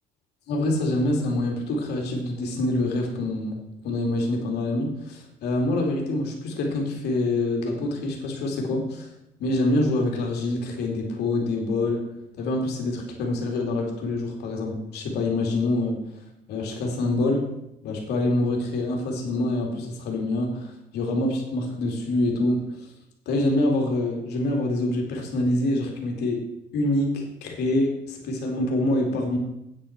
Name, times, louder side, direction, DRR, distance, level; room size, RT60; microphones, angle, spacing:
voice 1, 0.5-3.6 3.8-9.1 9.4-12.1 12.4-16.0 16.5-17.5 17.8-22.9 23.3-26.4 26.7-29.4, left 2 dB, 75° left, 1 dB, 2.7 m, -26 dB
9.1 x 7.7 x 5.9 m, 0.83 s
cardioid pair, 110°, 17 cm